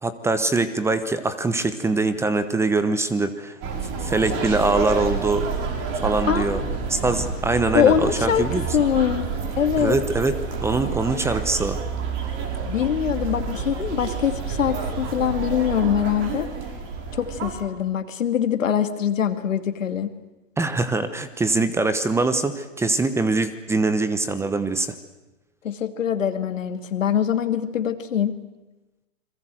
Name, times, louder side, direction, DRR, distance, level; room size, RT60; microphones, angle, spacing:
voice 1, 0.0-3.6 4.0-5.5 5.9-6.6 6.9-8.7 9.8-10.4 10.6-11.8 20.6-24.9, right 3 dB, 5° right, 12 dB, 1.0 m, -23 dB
sound 1, 3.6-17.6, right 5 dB, 35° right, 5.0 m, -29 dB
voice 2, 6.3-6.6 7.7-9.3 9.6-10.0 12.6-16.5 17.1-20.1 25.6-28.4, left 8 dB, 80° left, 8 dB, 2.6 m, -23 dB
29.0 x 22.5 x 7.9 m, 1.0 s
hypercardioid pair, 140°, 38 cm